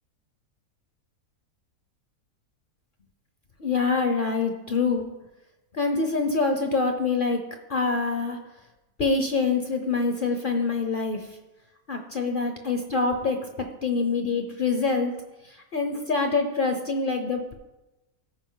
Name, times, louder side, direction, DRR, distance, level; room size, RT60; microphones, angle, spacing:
voice 1, 3.6-5.1 5.7-7.4 7.7-8.4 9.0-11.4 11.9-13.4 13.8-15.1 15.7-17.5, left 4 dB, 50° left, 5 dB, 0.6 m, -25 dB
14.5 x 4.9 x 3.8 m, 1.0 s
omnidirectional pair, 1.6 m